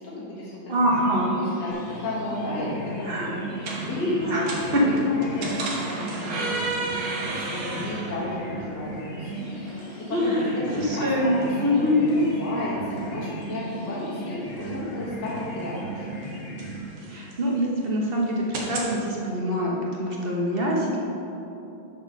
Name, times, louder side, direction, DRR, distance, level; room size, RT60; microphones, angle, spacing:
voice 1, 0.0-1.2 1.6-16.1, left 2 dB, 60° left, -8 dB, 1.9 m, -33 dB
voice 2, 0.7-1.4 3.1-3.3 4.2-4.4 10.1-11.3 11.6-12.0 17.1-21.0, equal, 35° right, -2 dB, 1.0 m, -25 dB
sound 1, 0.8-17.4, right 2 dB, 40° left, 1.5 m, -36 dB
sound 2, 1.7-18.9, right 2 dB, 80° right, 2.0 m, -37 dB
8.0 x 4.5 x 6.3 m, 2.9 s
omnidirectional pair, 2.2 m